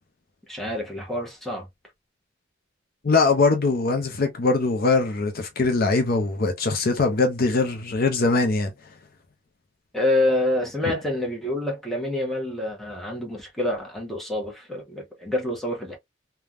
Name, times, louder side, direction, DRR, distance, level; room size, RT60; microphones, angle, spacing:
voice 1, 0.5-1.7 9.9-16.0, left 1 dB, ahead, 1.0 m, -27 dB
voice 2, 3.0-8.7, left 3 dB, 50° left, 0.6 m, -22 dB
3.3 x 2.3 x 2.4 m
head